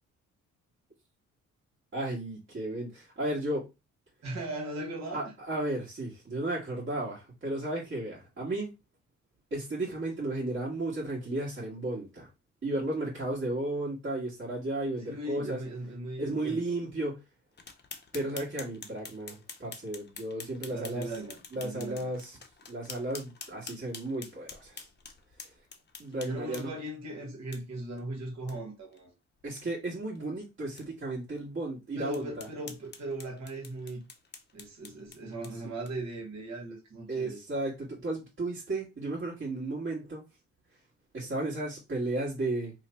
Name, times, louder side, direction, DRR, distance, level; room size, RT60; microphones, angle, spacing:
voice 1, 1.9-3.7 5.1-8.7 9.5-12.3 12.6-15.6 16.2-17.2 18.1-21.1 21.5-22.4 22.7-24.9 26.0-26.7 29.4-32.5 37.1-40.2 41.1-42.7, right 2 dB, 40° right, 1.6 m, -34 dB
voice 2, 4.2-5.3 15.1-16.8 20.6-22.1 26.2-29.1 32.0-34.0 34.5-37.4, right 1 dB, 65° right, 1.4 m, -38 dB
sound 1, 17.6-26.9 27.5-27.6 28.0-28.1 28.5-28.6 28.9-29.0 29.4-29.6 30.1-30.2 30.8-30.9 31.4-31.5 32.1-36.1, left 5 dB, 35° left, 0.8 m, -47 dB
3.1 x 2.2 x 4.0 m
cardioid pair, 90°, 30 cm